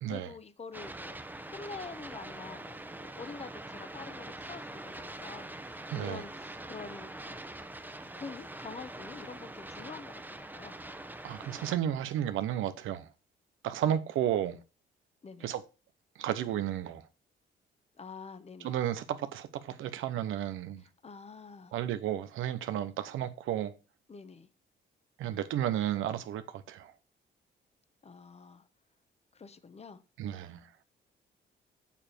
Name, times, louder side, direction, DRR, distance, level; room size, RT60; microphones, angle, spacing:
voice 1, 0.1-1.2 1.5-7.6 8.1-10.8 15.2-15.5 18.0-18.8 21.0-21.8 24.1-24.5 28.0-28.6 29.3-30.0, left 5 dB, 30° left, 1.2 m, -46 dB
sound 1, 0.7-11.8, right 1 dB, 10° right, 1.1 m, -44 dB
voice 2, 5.9-6.2 11.2-13.1 13.6-14.6 15.4-15.6 16.2-17.0 18.6-20.8 21.7-23.7 25.2-26.9 30.2-30.6, right 11 dB, 80° right, 0.8 m, -32 dB
7.1 x 6.9 x 4.4 m
cardioid pair, 90°, 20 cm